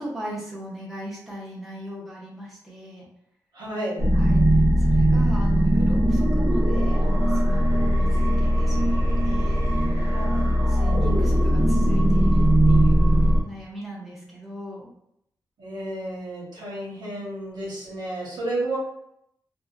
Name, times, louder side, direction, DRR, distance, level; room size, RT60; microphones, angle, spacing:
voice 1, 0.0-3.1 4.1-14.9, equal, 5° right, -5 dB, 0.7 m, -38 dB
voice 2, 3.5-4.1 10.1-10.4 15.6-18.8, right 1 dB, 90° right, -6 dB, 1.1 m, -32 dB
sound 1, 4.0-13.4, equal, 50° right, 0.7 m, -19 dB
2.7 x 2.1 x 2.4 m, 0.75 s
wide cardioid pair, 155°, 7 cm